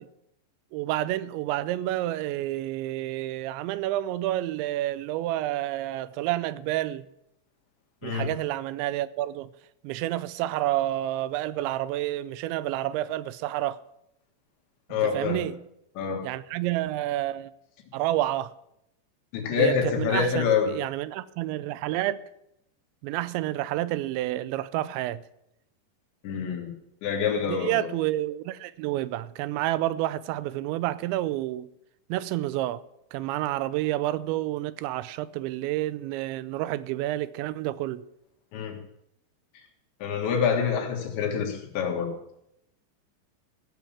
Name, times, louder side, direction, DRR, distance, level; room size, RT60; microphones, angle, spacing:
voice 1, 0.7-7.1 8.0-9.5 9.8-13.8 15.0-15.6 16.2-17.5 17.9-18.5 19.6-22.2 23.0-25.2 27.5-31.7 32.1-32.8 33.1-38.0, right 15 dB, 85° right, 2.9 m, -29 dB
voice 2, 14.9-15.4 16.0-16.3 19.3-20.7 26.2-26.7 27.0-27.9 38.5-38.8 40.0-42.1, left 6 dB, 80° left, 4.1 m, -26 dB
15.5 x 7.2 x 7.2 m
omnidirectional pair, 5.2 m